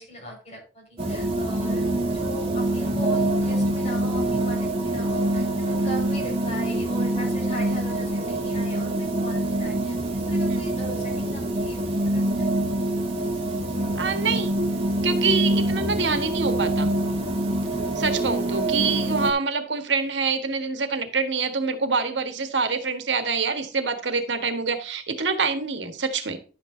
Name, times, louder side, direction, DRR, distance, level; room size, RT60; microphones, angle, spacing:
voice 1, 0.0-12.5, equal, 40° left, -1 dB, 5.8 m, -40 dB
sound 1, 1.0-19.3, right 1 dB, 30° right, 2.3 m, -25 dB
voice 2, 13.9-14.6 15.0-16.9 17.9-26.4, right 4 dB, 80° right, 8 dB, 1.6 m, -26 dB
11.5 x 8.4 x 2.8 m, 0.36 s
head